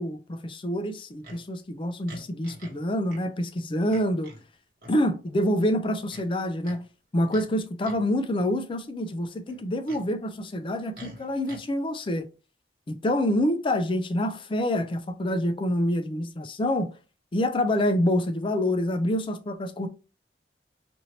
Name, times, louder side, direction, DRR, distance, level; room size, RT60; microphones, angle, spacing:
voice 1, 0.0-4.3 4.9-6.9 7.1-12.3 12.9-16.9 17.3-19.9, left 1 dB, 30° left, 0.4 m, -27 dB
Livestock farm animals working animals, 1.2-1.4 2.1-2.8 3.1-3.2 3.9-4.4 4.8-5.0 6.1-6.8 7.3-7.5 7.8-8.1 9.5-10.1 10.9-11.6, right 1 dB, 55° right, 1.3 m, -46 dB
2.8 x 2.6 x 3.0 m
head